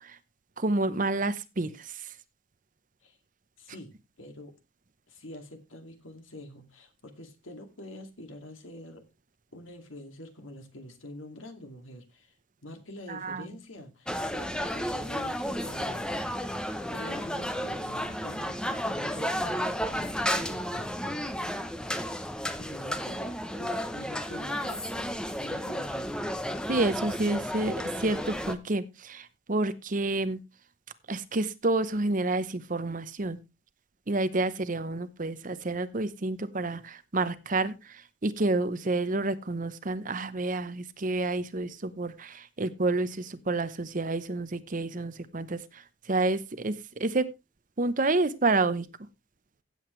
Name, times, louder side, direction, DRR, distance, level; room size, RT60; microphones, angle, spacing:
voice 1, 0.6-1.9 13.1-13.4 26.7-30.4 31.1-33.4 34.1-45.8 46.1-46.7 47.0-47.3 47.8-48.9, right 2 dB, 40° right, 0.8 m, -29 dB
voice 2, 3.6-4.5 5.1-9.1 9.5-12.4 12.6-16.6 16.9-21.5 22.4-25.1 25.4-26.1, left 1 dB, 80° left, 2.4 m, -46 dB
sound 1, 14.1-28.5, equal, 5° left, 0.8 m, -32 dB
16.0 x 7.9 x 3.2 m
head